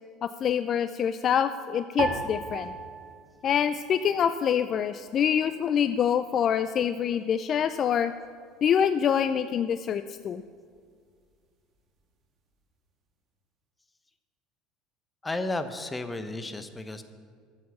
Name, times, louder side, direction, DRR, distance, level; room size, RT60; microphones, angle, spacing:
voice 1, 0.2-2.7 3.4-8.1 8.6-10.4, left 8 dB, 45° left, 11 dB, 0.4 m, -25 dB
sound 1, 2.0-4.5 4.8-5.7 6.3-6.7, right 4 dB, 50° right, 1.8 m, -36 dB
voice 2, 15.2-17.0, left 2 dB, 15° left, 9 dB, 1.1 m, -33 dB
12.0 x 7.7 x 7.0 m, 2.1 s
hypercardioid pair, 75°, 0 cm